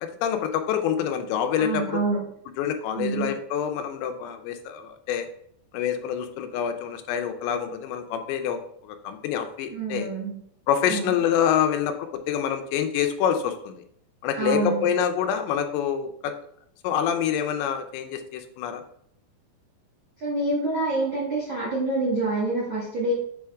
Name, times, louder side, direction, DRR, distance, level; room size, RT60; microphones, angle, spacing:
voice 1, 0.0-2.0 2.6-5.3 5.7-10.1 10.7-13.8 14.2-16.3 16.8-18.8, left 8 dB, 90° left, 7 dB, 2.9 m, -26 dB
voice 2, 1.6-2.3 2.9-3.3 9.7-10.3 10.9-11.2 14.4-14.9 20.2-23.1, right 2 dB, 70° right, -7 dB, 1.1 m, -27 dB
7.1 x 4.4 x 3.6 m, 0.68 s
omnidirectional pair, 4.9 m